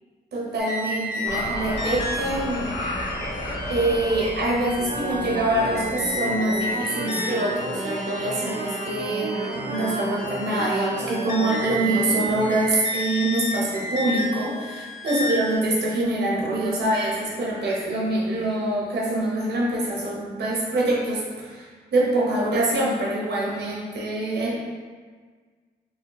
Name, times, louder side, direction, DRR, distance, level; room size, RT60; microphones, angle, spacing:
voice 1, 0.3-2.7 3.7-24.6, right 1 dB, 85° right, -4 dB, 0.9 m, -25 dB
sound 1, 0.6-15.5, equal, 50° left, 1.4 m, -32 dB
sound 2, 1.2-6.6, left 1 dB, 65° left, 0.9 m, -33 dB
sound 3, 4.7-12.4, right 2 dB, 50° right, 0.5 m, -32 dB
4.1 x 2.1 x 3.0 m, 1.5 s
cardioid pair, 75°, 17 cm